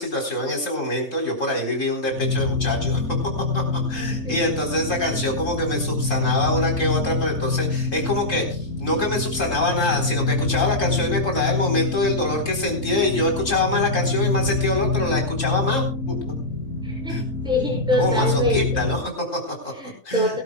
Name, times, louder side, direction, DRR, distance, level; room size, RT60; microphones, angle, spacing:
voice 1, 0.0-3.0 3.5-16.3 17.1-17.3 17.9-19.7 20.0-20.4, left 1 dB, 60° left, 2 dB, 4.5 m, -25 dB
sound 1, 2.1-19.1, left 3 dB, 80° left, 3.5 m, -26 dB
voice 2, 16.8-17.2 17.4-18.8 19.7-20.4, left 1 dB, 5° right, -3 dB, 6.4 m, -24 dB
23.0 x 12.5 x 2.3 m, 0.39 s
omnidirectional pair, 1.5 m